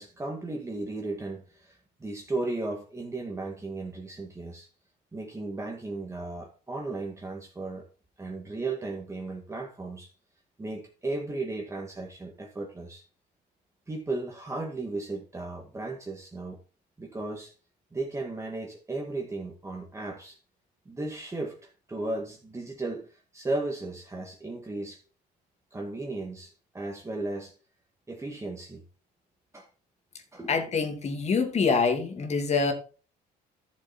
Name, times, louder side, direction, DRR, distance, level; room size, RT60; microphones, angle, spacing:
voice 1, 0.0-4.7 5.1-7.9 8.2-10.1 10.6-13.0 13.9-16.6 17.0-17.5 17.9-20.4 20.9-25.0 25.7-27.5 28.1-28.8 29.5-29.7 30.3-30.7, right 2 dB, 15° right, 2.1 m, -35 dB
voice 2, 30.5-32.7, left 4 dB, 40° left, 2.3 m, -25 dB
12.0 x 7.1 x 4.5 m
cardioid pair, 110°, 17 cm